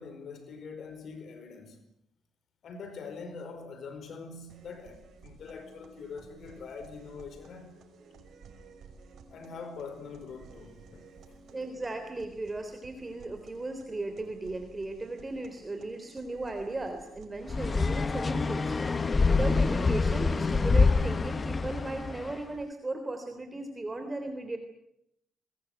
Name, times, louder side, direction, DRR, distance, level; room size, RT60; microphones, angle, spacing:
voice 1, 0.0-1.8 2.6-7.7 9.3-11.4, left 5 dB, 60° left, 4.9 m, -44 dB
sound 1, 4.5-20.5, right 4 dB, 65° right, 5.7 m, -54 dB
voice 2, 11.5-18.8 19.0-24.6, right 2 dB, 20° right, 3.6 m, -36 dB
sound 2, 17.5-22.4, left 4 dB, 30° left, 1.1 m, -26 dB
24.5 x 21.0 x 9.3 m
cardioid pair, 90°, 0 cm